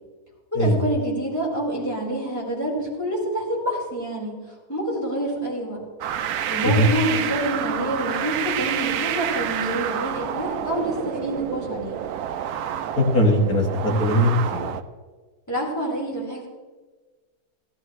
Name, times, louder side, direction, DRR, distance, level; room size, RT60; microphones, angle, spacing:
voice 1, 0.5-4.4 4.7-5.8 6.5-11.9 15.5-16.5, right 1 dB, 10° left, -6 dB, 4.4 m, -27 dB
sound 1, 6.0-14.8, right 9 dB, 70° right, 1.1 m, -28 dB
voice 2, 13.0-14.7, equal, 65° left, 0 dB, 2.2 m, -20 dB
16.0 x 13.0 x 3.2 m, 1.4 s
omnidirectional pair, 1.7 m